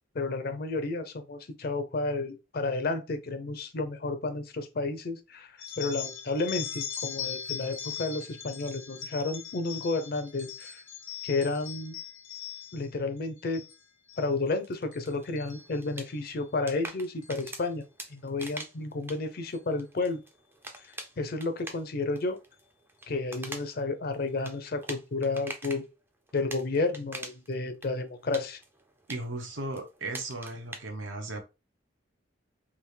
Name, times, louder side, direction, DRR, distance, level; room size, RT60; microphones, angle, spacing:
voice 1, 0.1-10.8 11.2-11.9 12.7-13.6 14.2-17.8 18.1-20.2 21.2-22.4 23.1-25.8 26.3-28.6, left 3 dB, 50° left, 0.5 m, -31 dB
sound 1, 5.6-12.9 13.4-13.8 14.1-14.5 14.9-16.3 17.2-17.5 18.4-18.6 19.5-19.6 20.0-20.1 20.7-20.9, left 9 dB, 80° left, 0.8 m, -40 dB
Fire crackles in the fireplace, 14.2-25.8 26.3-27.5 27.8-30.8, right 2 dB, 10° right, 0.4 m, -45 dB
voice 2, 29.1-31.4, right 2 dB, 80° right, 0.9 m, -36 dB
3.5 x 2.5 x 3.2 m
head